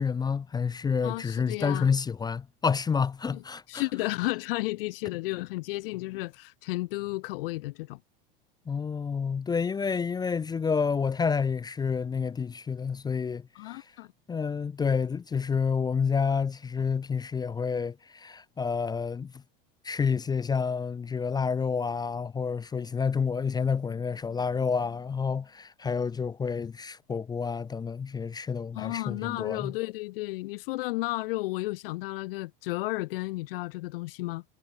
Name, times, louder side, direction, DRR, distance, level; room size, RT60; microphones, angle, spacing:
voice 1, 0.0-3.8 8.7-13.8 14.3-19.3 19.8-29.7, left 6 dB, 15° left, 0.5 m, -29 dB
voice 2, 1.0-1.9 3.3-3.4 3.7-8.0 13.5-14.1 28.7-34.4, left 20 dB, 70° left, 0.6 m, -33 dB
hypercardioid pair, 110°, 29 cm